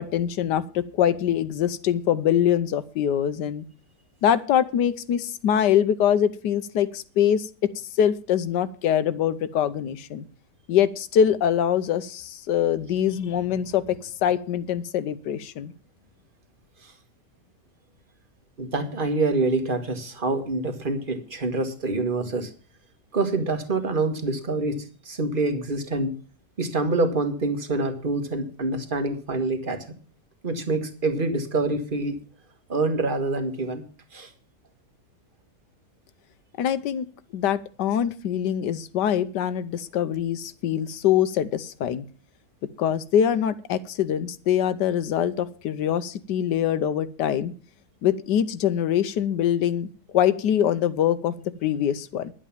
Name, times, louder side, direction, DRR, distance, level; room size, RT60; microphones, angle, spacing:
voice 1, 0.0-3.6 4.2-7.5 7.7-10.2 10.7-15.7 36.6-37.1 37.3-42.0 42.8-47.5 48.0-52.3, left 9 dB, 80° left, 14 dB, 1.4 m, -24 dB
voice 2, 18.6-22.5 23.1-26.1 26.6-29.8 30.4-32.1 32.7-33.8 34.1-34.3, right 2 dB, 30° right, 7 dB, 1.6 m, -26 dB
11.0 x 8.3 x 7.2 m, 0.39 s
omnidirectional pair, 1.8 m